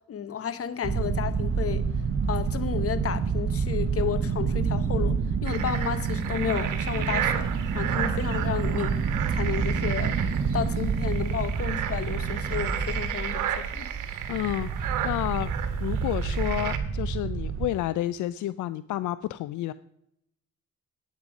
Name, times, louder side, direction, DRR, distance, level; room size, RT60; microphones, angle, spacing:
voice 1, 0.1-1.9 2.3-7.5 7.7-9.0 9.3-10.2 10.5-13.9, left 8 dB, 50° left, 1.1 m, -32 dB
sound 1, 0.8-17.7, right 5 dB, 45° right, 1.4 m, -28 dB
sound 2, 5.5-16.8, right 10 dB, 90° right, 1.4 m, -34 dB
voice 2, 14.3-15.5 15.8-19.7, left 14 dB, 75° left, 0.5 m, -30 dB
12.0 x 9.4 x 5.1 m
cardioid pair, 90°, 30 cm